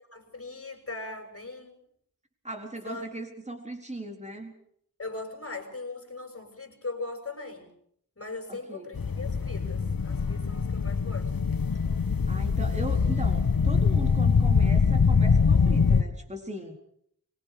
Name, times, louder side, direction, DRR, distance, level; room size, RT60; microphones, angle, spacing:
voice 1, 0.1-1.8 2.8-3.0 5.0-7.7 8.2-11.3, left 3 dB, 40° left, 3 dB, 6.2 m, -39 dB
voice 2, 2.4-4.5 8.5-8.9 12.3-16.8, right 1 dB, 20° right, 3 dB, 4.2 m, -38 dB
sound 1, 8.9-16.0, left 5 dB, 70° left, 1.5 m, -23 dB
25.0 x 22.5 x 5.2 m, 0.68 s
wide cardioid pair, 65°, 36 cm